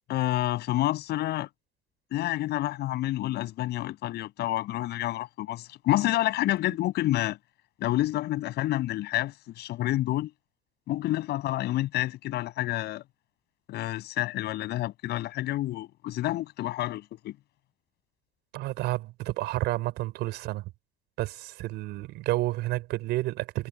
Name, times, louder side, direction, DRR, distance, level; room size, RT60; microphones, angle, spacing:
voice 1, 0.1-1.5 2.1-7.4 7.8-10.3 10.9-13.0 13.7-17.3, left 15 dB, 75° left, 7.3 m, -29 dB
voice 2, 18.5-20.7 21.2-23.7, right 18 dB, 90° right, 5.4 m, -30 dB
cardioid pair, 110°, 17 cm